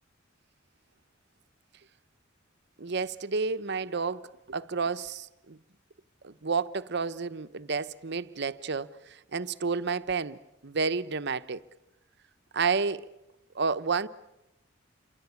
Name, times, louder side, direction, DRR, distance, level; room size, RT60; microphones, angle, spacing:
voice 1, 2.8-5.6 6.2-11.6 12.5-13.1 13.5-14.1, right 5 dB, 60° right, 0.9 m, -31 dB
28.0 x 24.0 x 8.4 m
head